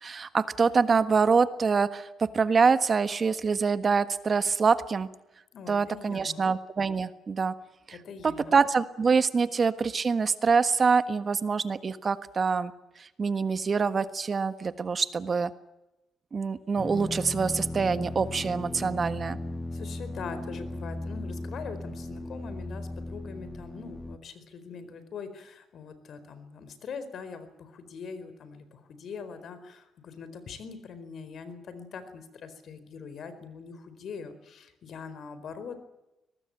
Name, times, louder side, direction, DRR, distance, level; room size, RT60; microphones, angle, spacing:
voice 1, 0.0-5.1 5.7-7.5 7.9-8.0 8.5-12.7 13.0-15.5 16.3-19.4, right 5 dB, 40° right, 12 dB, 1.5 m, -25 dB
voice 2, 5.5-6.4 7.9-8.6 19.7-35.8, left 5 dB, 60° left, 12 dB, 4.4 m, -42 dB
sound 1, 16.8-24.2, left 1 dB, 10° left, 1.5 m, -37 dB
23.0 x 19.5 x 8.9 m, 0.94 s
cardioid pair, 90°, 0 cm